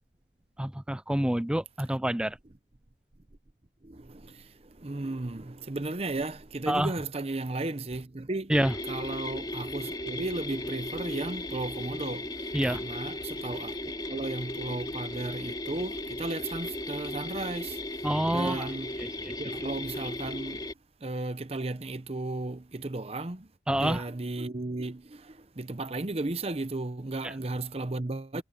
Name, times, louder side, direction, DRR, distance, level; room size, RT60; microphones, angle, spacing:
voice 1, 0.6-2.4 6.7-6.9 8.5-8.7 12.5-12.8 18.0-18.7 19.2-19.3 23.7-24.0 27.2-27.3, right 1 dB, 5° right, 0.3 m, -27 dB
voice 2, 3.8-8.5 8.9-18.9 19.4-20.7 21.0-23.5 23.8-28.4, right 2 dB, 35° right, 0.8 m, -35 dB
sound 1, 8.5-20.7, left 1 dB, 25° left, 2.6 m, -36 dB
head